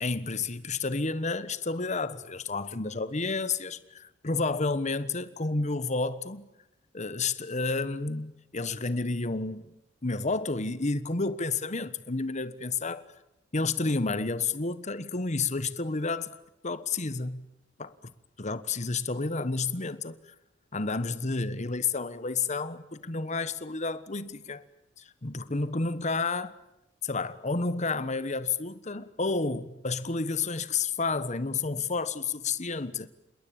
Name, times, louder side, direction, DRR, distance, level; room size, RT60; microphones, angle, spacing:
voice 1, 0.0-6.5 6.9-9.7 10.0-13.0 13.5-16.3 16.6-17.5 17.8-17.9 18.4-20.2 20.7-24.6 25.0-26.5 27.0-33.1, left 3 dB, 40° left, 1.3 m, -30 dB
27.5 x 21.5 x 8.7 m
head